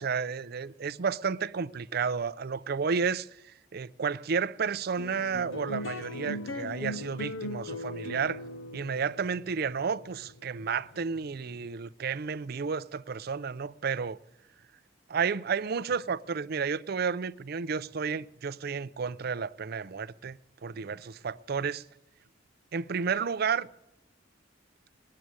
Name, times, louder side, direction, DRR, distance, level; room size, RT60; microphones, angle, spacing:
voice 1, 0.0-8.4 8.7-14.2 15.1-21.8 22.7-23.7, right 6 dB, 55° right, 0.5 m, -32 dB
sound 1, 5.0-11.6, left 1 dB, 85° left, 0.8 m, -39 dB
19.5 x 7.6 x 9.6 m
head